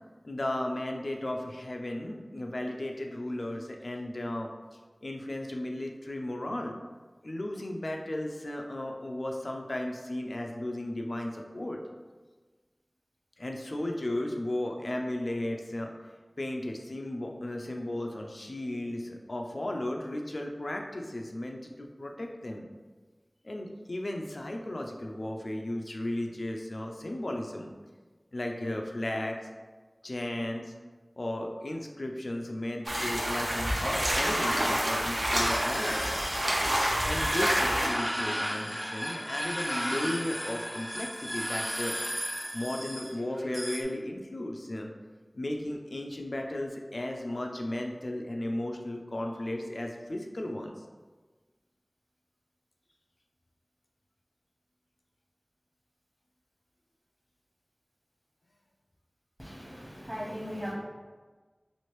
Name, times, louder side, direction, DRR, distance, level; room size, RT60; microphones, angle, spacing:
voice 1, 0.2-4.5 5.0-6.8 7.2-11.8 13.4-15.9 16.4-22.7 23.4-27.7 28.3-29.4 30.0-30.7 31.2-36.1 37.0-41.9 42.5-44.9 45.3-50.8, left 1 dB, 70° left, 2 dB, 0.4 m, -35 dB
sound 1, 32.9-37.9, equal, 65° right, 0.6 m, -28 dB
sound 2, 33.6-43.8, equal, ahead, 0.4 m, -35 dB
voice 2, 59.4-60.7, equal, 30° right, -6 dB, 1.0 m, -38 dB
3.1 x 2.5 x 3.1 m, 1.3 s
wide cardioid pair, 45°, 0 cm